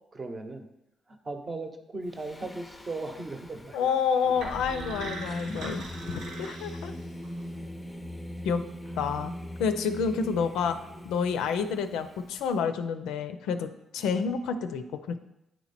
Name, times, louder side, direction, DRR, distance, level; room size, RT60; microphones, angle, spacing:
voice 1, 0.1-0.7 1.1-4.0, right 2 dB, 30° right, 5 dB, 0.8 m, -37 dB
Singing, 2.1-12.5, equal, 15° left, 0.5 m, -41 dB
voice 2, 3.7-6.9 8.4-8.6 9.0-9.3 9.6-10.8 11.0-15.2, left 6 dB, 90° left, 9 dB, 0.4 m, -29 dB
sound 1, 4.4-7.4, right 2 dB, 85° right, 1.4 m, -41 dB
9.0 x 3.0 x 4.2 m, 0.86 s
cardioid pair, 90°, 0 cm